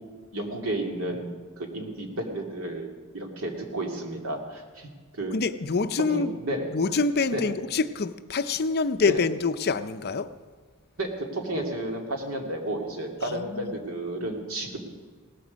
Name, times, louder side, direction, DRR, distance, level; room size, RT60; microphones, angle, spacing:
voice 1, 0.3-4.9 5.1-5.4 6.1-6.8 7.3-7.5 9.1-9.2 11.0-14.8, right 1 dB, 75° right, 2 dB, 2.4 m, -32 dB
voice 2, 5.3-6.4 6.7-10.3 13.3-13.7, left 4 dB, 50° left, 11 dB, 0.6 m, -26 dB
17.5 x 13.5 x 5.2 m, 1.5 s
head